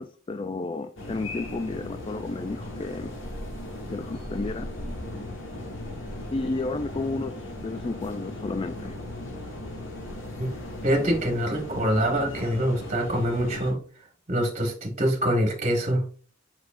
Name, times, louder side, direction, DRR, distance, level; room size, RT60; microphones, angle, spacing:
voice 1, 0.0-3.1 3.9-4.7 6.3-9.0, left 3 dB, 25° left, 9 dB, 0.3 m, -32 dB
sound 1, 1.0-13.7, left 1 dB, 75° left, 2.1 m, -37 dB
voice 2, 10.8-13.8 14.3-16.0, equal, 35° right, 1 dB, 1.6 m, -25 dB
8.1 x 5.6 x 2.6 m, 0.42 s
head